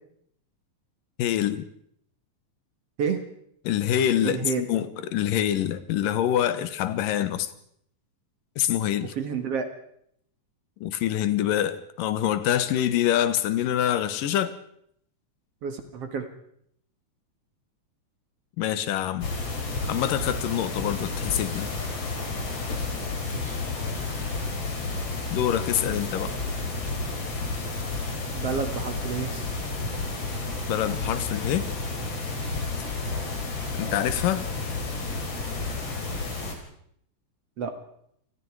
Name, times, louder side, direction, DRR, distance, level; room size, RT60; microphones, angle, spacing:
voice 1, 1.2-1.7 3.6-7.5 8.6-9.1 10.8-14.6 18.6-19.3 19.9-21.7 25.3-26.3 30.7-31.7 33.7-34.5, left 11 dB, 80° left, 2.8 m, -25 dB
voice 2, 4.2-4.6 9.2-9.7 15.6-16.3 23.3-23.6 26.2-26.4 28.3-29.3 37.6-37.8, right 6 dB, 50° right, 2.4 m, -30 dB
sound 1, 19.2-36.5, left 3 dB, 45° left, 4.6 m, -31 dB
27.5 x 20.5 x 4.8 m
omnidirectional pair, 3.8 m